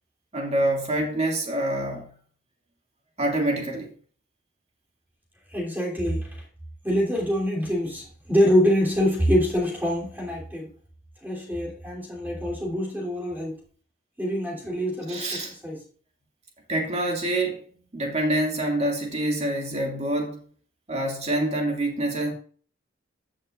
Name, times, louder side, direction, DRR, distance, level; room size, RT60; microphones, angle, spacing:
voice 1, 0.3-2.1 3.2-3.9 15.1-15.5 16.7-20.4 20.9-22.3, right 1 dB, 30° right, 2.2 m, -26 dB
voice 2, 5.5-6.4 6.8-10.7 11.2-13.6 14.2-15.8, equal, 10° right, 3.0 m, -25 dB
15.0 x 6.2 x 2.4 m
head